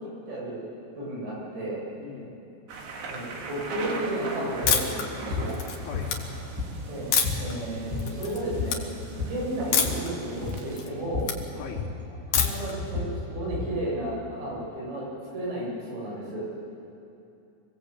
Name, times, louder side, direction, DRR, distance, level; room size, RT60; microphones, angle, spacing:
voice 1, 0.3-0.6 1.0-1.8 3.1-5.6 6.9-7.1 7.4-8.8 9.2-11.3 12.3-15.1 15.3-16.5, right 1 dB, 85° right, -5 dB, 10.0 m, -33 dB
voice 2, 2.0-2.4 5.8-6.1 9.0-9.2 11.5-11.8, left 7 dB, 80° left, -5 dB, 4.9 m, -41 dB
sound 1, 2.7-10.9, right 3 dB, 70° right, 4.4 m, -39 dB
sound 2, 4.6-4.8 5.3-5.5 5.9-6.9 7.2-7.5 7.8-8.2 8.5-9.4 9.7-10.0 10.4-10.6 11.1-11.4 11.7-13.8, left 4 dB, 20° right, 3.4 m, -32 dB
sound 3, 4.7-5.0 5.5-6.2 7.1-7.5 8.0-8.4 8.6-8.8 9.7-10.1 10.5-11.4 12.3-12.7, left 7 dB, 60° left, 3.0 m, -25 dB
26.5 x 19.0 x 8.4 m, 2.8 s
omnidirectional pair, 5.0 m